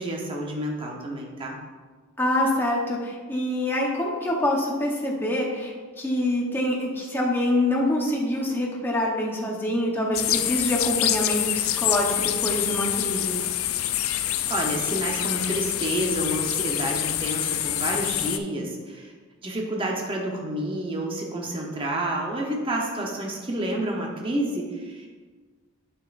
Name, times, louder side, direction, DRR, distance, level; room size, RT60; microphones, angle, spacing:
voice 1, 0.0-1.6 14.5-19.1 19.4-25.1, right 1 dB, 25° right, -1 dB, 1.0 m, -29 dB
voice 2, 2.2-13.4, left 1 dB, 10° left, -2 dB, 1.0 m, -25 dB
sound 1, 10.1-18.4, left 13 dB, 70° left, 0.4 m, -26 dB
8.5 x 7.1 x 2.6 m, 1.5 s
head